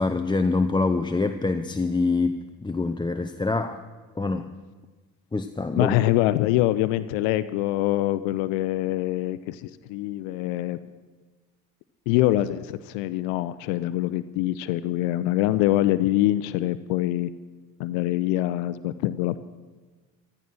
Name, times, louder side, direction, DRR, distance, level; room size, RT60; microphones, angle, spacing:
voice 1, 0.0-3.8 4.2-4.5 5.3-5.9, left 3 dB, 10° left, 7 dB, 0.6 m, -25 dB
voice 2, 5.8-10.8 12.1-17.3 17.8-19.4, left 15 dB, 65° left, 14 dB, 0.7 m, -24 dB
14.0 x 13.0 x 6.2 m, 1.3 s
hypercardioid pair, 55°, 48 cm